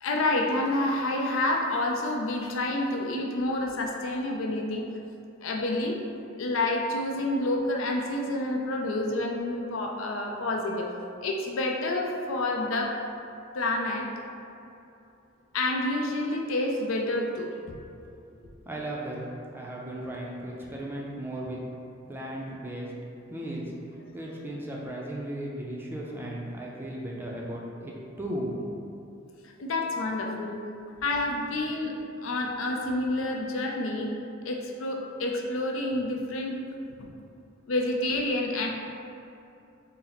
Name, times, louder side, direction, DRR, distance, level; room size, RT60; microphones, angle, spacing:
voice 1, 0.0-4.9 5.4-6.0 6.4-10.9 11.2-13.0 13.5-14.1 15.5-17.5 29.6-30.6 31.0-32.0 32.2-34.1 34.4-36.6 37.0-37.1 37.7-38.7, left 2 dB, 75° left, 1 dB, 0.5 m, -28 dB
voice 2, 18.6-19.2 19.5-21.6 22.1-22.9 23.3-23.7 24.1-28.6, right 1 dB, 10° right, -3 dB, 0.4 m, -36 dB
4.3 x 2.0 x 3.9 m, 2.7 s
head